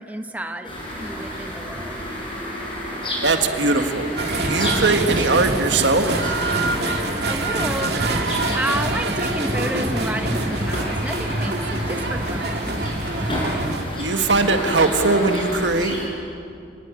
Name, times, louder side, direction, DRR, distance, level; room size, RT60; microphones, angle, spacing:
voice 1, 0.0-2.0 7.2-8.0 8.5-12.8, right 1 dB, 10° right, 6 dB, 1.0 m, -31 dB
sound 1, 0.6-16.1, equal, 30° left, 6.6 m, -30 dB
voice 2, 3.2-4.2 4.4-6.1 14.0-16.0, right 3 dB, 80° right, 6 dB, 1.9 m, -20 dB
sound 2, 4.2-13.8, right 2 dB, 60° right, 2.5 m, -25 dB
29.0 x 19.5 x 9.0 m, 2.5 s
head